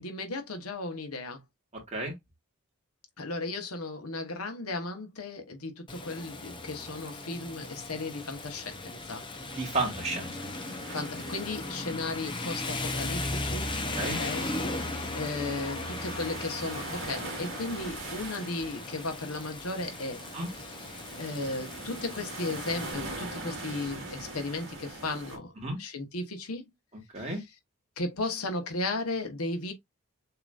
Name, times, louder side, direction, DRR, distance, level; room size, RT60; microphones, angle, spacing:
voice 1, 0.0-1.4 3.2-9.2 10.9-13.7 14.0-20.2 21.2-25.5 25.8-26.6 27.2-27.3 28.0-29.7, left 2 dB, 80° left, 1.3 m, -35 dB
voice 2, 1.7-2.2 9.5-10.3 13.9-14.2 20.3-20.5 25.6-25.8 27.1-27.4, right 2 dB, 30° right, 2.1 m, -32 dB
Rain, 5.9-22.9, left 2 dB, 20° left, 0.7 m, -37 dB
sound 1, 7.6-25.4, right 2 dB, 55° right, 2.2 m, -43 dB
6.8 x 3.0 x 2.5 m
head